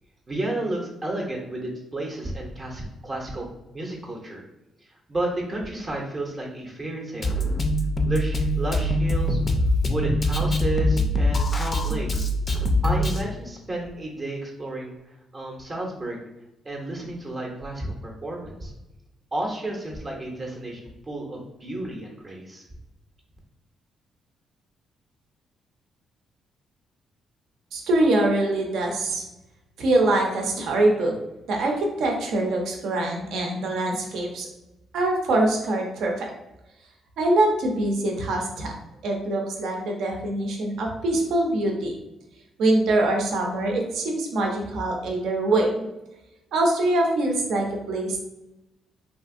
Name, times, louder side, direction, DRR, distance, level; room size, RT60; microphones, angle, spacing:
voice 1, 0.3-3.5 3.7-4.4 5.1-7.4 8.0-9.4 9.9-12.3 12.8-14.9 15.3-16.2 16.6-18.7 19.3-20.8 21.1-22.6, right 1 dB, 30° right, -1 dB, 0.6 m, -32 dB
Drum kit, 7.2-13.2, left 1 dB, 35° left, 0.4 m, -23 dB
voice 2, 27.7-29.2 29.8-31.1 31.5-34.5 34.9-36.3 37.2-38.7 39.0-41.9 42.6-45.7 46.5-48.2, right 2 dB, 75° right, 1 dB, 0.6 m, -23 dB
2.8 x 2.5 x 2.5 m, 0.95 s
cardioid pair, 90°, 0 cm